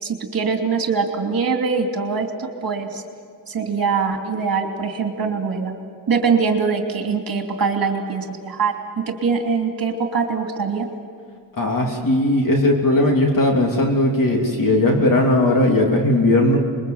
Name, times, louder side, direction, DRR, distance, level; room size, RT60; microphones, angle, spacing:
voice 1, 0.0-3.0 3.5-5.7 6.1-8.7 9.1-10.9, right 5 dB, 50° right, 3 dB, 2.9 m, -23 dB
voice 2, 11.6-16.6, left 1 dB, 45° left, 1 dB, 3.0 m, -18 dB
26.0 x 22.0 x 7.9 m, 2.1 s
wide cardioid pair, 115°, 45 cm